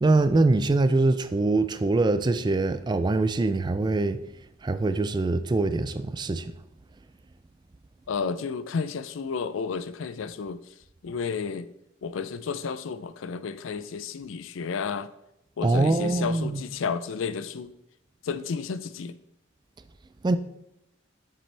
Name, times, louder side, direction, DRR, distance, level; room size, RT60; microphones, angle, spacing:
voice 1, 0.0-4.2 4.6-6.4 15.6-16.6 20.2-20.4, right 2 dB, 20° right, 0.3 m, -23 dB
voice 2, 8.1-10.6 11.0-11.7 12.0-15.1 15.6-17.7 18.2-19.2, left 5 dB, 70° left, 0.4 m, -32 dB
7.4 x 6.8 x 3.3 m
head